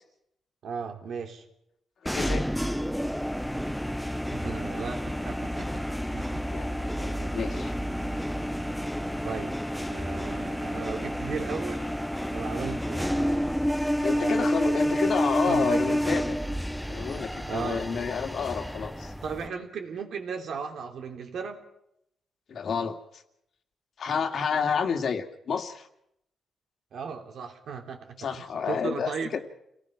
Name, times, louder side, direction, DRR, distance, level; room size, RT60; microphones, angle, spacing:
voice 1, 0.6-1.4 4.3-5.8 6.1-6.4 9.2-12.0 12.3-13.6 14.1-15.1 15.5-16.0 17.5-18.1 19.2-21.6 26.9-29.4, right 6 dB, 70° right, 4 dB, 3.3 m, -36 dB
voice 2, 2.1-2.5 6.5-7.7 14.0-16.4 16.9-19.1 22.5-23.2 24.0-25.9 28.2-29.4, left 6 dB, 60° left, 6 dB, 2.2 m, -30 dB
sound 1, 2.1-19.5, equal, ahead, 0.8 m, -29 dB
29.0 x 18.5 x 6.0 m, 0.78 s
cardioid pair, 115°, 0 cm